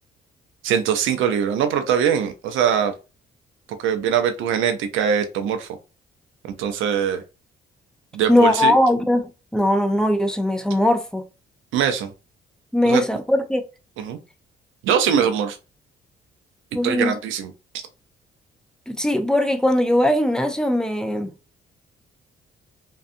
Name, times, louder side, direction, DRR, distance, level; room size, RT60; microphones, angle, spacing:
voice 1, 0.6-2.9 3.8-5.7 6.6-7.2 8.1-8.7 11.7-12.1 12.8-13.0 14.0-14.2 14.8-15.6 16.8-17.5, right 8 dB, 80° right, 0.4 m, -22 dB
voice 2, 8.3-11.2 12.7-13.6 16.7-17.1 18.9-21.3, left 1 dB, 5° left, 0.4 m, -20 dB
2.5 x 2.3 x 2.5 m
cardioid pair, 90°, 20 cm